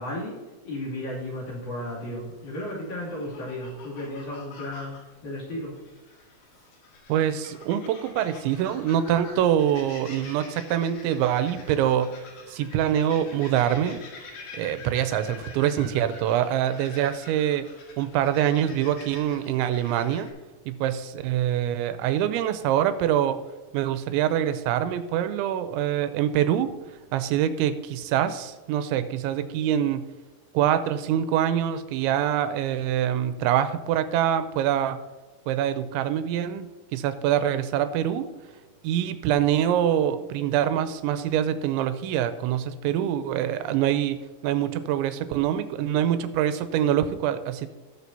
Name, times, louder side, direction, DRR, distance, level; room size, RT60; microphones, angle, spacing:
voice 1, 0.0-5.8, left 1 dB, 45° left, -6 dB, 3.6 m, -34 dB
sound 1, 1.1-20.3, left 4 dB, 70° left, 3.9 m, -47 dB
voice 2, 7.1-12.1 12.5-14.0 14.5-17.7 18.0-20.3 20.7-23.4 23.7-26.7 27.1-30.0 30.5-35.0 35.5-38.3 38.8-44.2 44.4-47.7, right 10 dB, 85° right, 11 dB, 2.9 m, -25 dB
18.5 x 6.6 x 2.7 m, 1.3 s
omnidirectional pair, 5.3 m